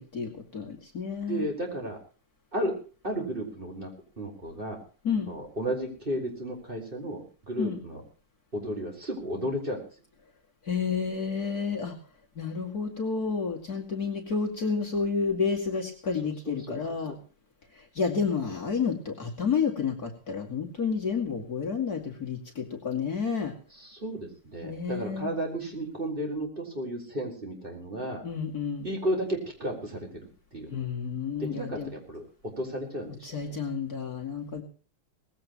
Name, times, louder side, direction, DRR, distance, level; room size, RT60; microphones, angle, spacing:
voice 1, 0.0-1.5 5.0-5.3 7.6-7.8 10.7-11.9 12.4-17.1 17.8-23.5 24.6-25.3 28.2-28.9 30.7-31.9 33.2-34.6, left 5 dB, 45° left, 1 dB, 2.8 m, -30 dB
voice 2, 1.3-2.0 2.5-2.8 3.0-3.9 4.2-4.8 5.3-8.0 8.5-9.8 16.4-16.8 23.8-28.2 28.8-30.7 31.4-33.6, right 1 dB, 25° right, 2 dB, 4.8 m, -33 dB
19.0 x 16.0 x 3.1 m, 0.39 s
omnidirectional pair, 2.4 m